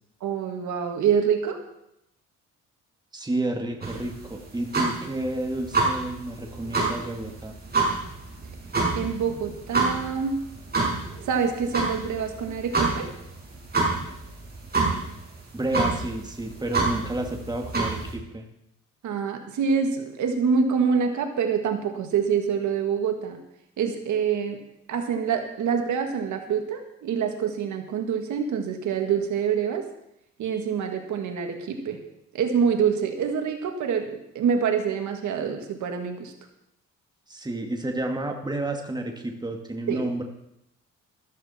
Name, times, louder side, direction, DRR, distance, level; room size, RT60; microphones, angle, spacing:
voice 1, 0.2-1.6 9.0-10.3 11.3-13.1 19.0-23.4 23.8-24.6 24.9-29.9 30.4-32.0 32.3-36.3 39.9-40.1, right 6 dB, 75° right, 4 dB, 2.0 m, -26 dB
voice 2, 3.1-7.5 15.5-18.5 37.3-40.2, right 1 dB, 15° right, 2 dB, 2.1 m, -30 dB
sound 1, 3.8-18.1, right 3 dB, 30° right, 6.1 m, -28 dB
14.0 x 13.5 x 4.4 m, 0.81 s
cardioid pair, 90°, 30 cm